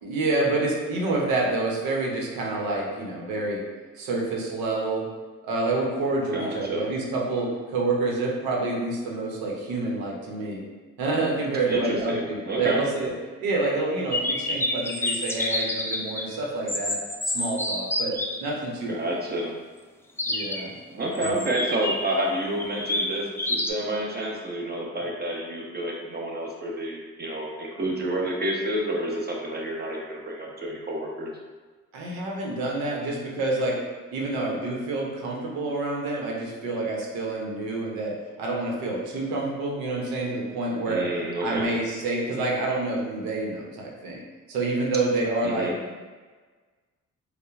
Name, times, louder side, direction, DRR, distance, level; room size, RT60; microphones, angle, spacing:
voice 1, 0.0-3.6 4.0-5.1 5.4-10.6 11.0-13.1 13.4-17.0 17.2-19.2 20.3-20.7 21.2-21.4 31.9-33.8 34.1-41.1 41.4-44.2 44.5-45.7, right 2 dB, 85° right, -2 dB, 0.8 m, -28 dB
voice 2, 6.3-6.9 11.7-12.8 18.9-19.5 20.9-31.3 40.8-41.7 45.4-45.8, right 1 dB, 30° right, -2 dB, 1.0 m, -29 dB
sound 1, 14.1-16.3 16.7-18.4 20.2-20.7 21.2-22.1 22.6-23.7, left 1 dB, 5° left, 0.4 m, -28 dB
5.4 x 2.1 x 2.4 m, 1.4 s
supercardioid pair, 60°, 35 cm